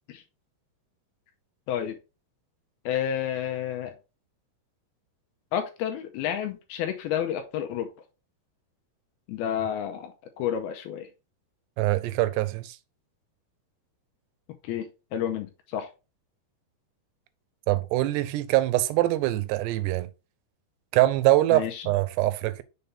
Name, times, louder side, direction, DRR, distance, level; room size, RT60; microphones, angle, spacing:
voice 1, 2.9-3.9 5.5-7.9 9.3-11.1 14.6-14.9 15.1-15.9 21.5-21.9, left 9 dB, 80° left, 2.4 m, -30 dB
voice 2, 11.8-12.8 17.7-20.1 20.9-22.6, right 16 dB, 85° right, 2.7 m, -24 dB
6.8 x 4.1 x 3.4 m
omnidirectional pair, 4.8 m